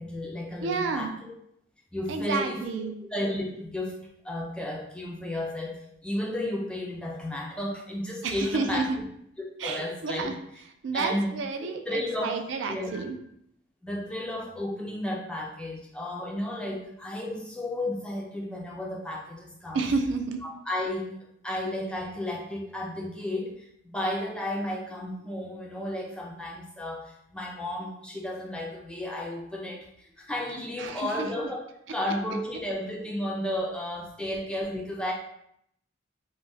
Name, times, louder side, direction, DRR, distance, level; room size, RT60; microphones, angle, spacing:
voice 1, 0.0-1.3 1.9-4.0 4.2-8.8 9.6-10.3 10.9-11.3 11.9-12.4 12.7-13.1 13.8-19.8 20.4-21.1 21.4-31.6 31.9-35.1, left 1 dB, 5° left, -2 dB, 0.3 m, -33 dB
voice 2, 0.6-1.2 2.1-3.0 8.2-9.0 9.6-13.2 19.7-20.4 30.8-31.5 31.9-32.2, right 4 dB, 70° right, 6 dB, 0.3 m, -31 dB
2.3 x 2.0 x 3.8 m, 0.73 s
head